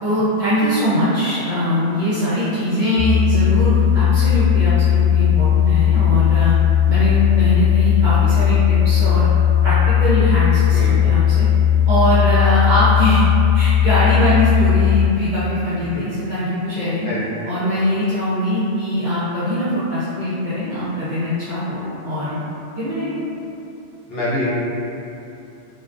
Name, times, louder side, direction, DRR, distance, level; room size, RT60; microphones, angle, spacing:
voice 1, 0.0-6.5 6.9-9.3 9.6-11.5 11.9-13.2 13.5-17.1 17.4-22.4 22.8-23.2, equal, 50° right, -12 dB, 0.6 m, -21 dB
sound 1, 3.0-15.1, left 10 dB, 30° left, 0.9 m, -16 dB
voice 2, 10.7-11.1 15.9-16.0 17.1-17.3 24.1-24.5, left 1 dB, 60° left, -10 dB, 0.9 m, -25 dB
2.3 x 2.2 x 2.4 m, 2.8 s
omnidirectional pair, 1.2 m